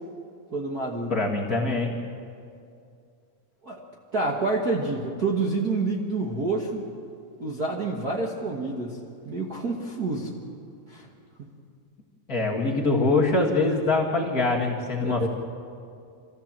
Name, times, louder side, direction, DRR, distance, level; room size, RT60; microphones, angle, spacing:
voice 1, 0.5-1.2 3.6-3.8 4.1-6.8 7.4-9.0 9.2-10.3 10.9-11.0 11.4-11.5 15.0-15.3, right 3 dB, 40° right, -2 dB, 1.5 m, -28 dB
voice 2, 1.1-2.0 12.3-15.3, left 3 dB, 35° left, -3 dB, 2.1 m, -24 dB
25.0 x 15.0 x 7.5 m, 2.4 s
omnidirectional pair, 3.4 m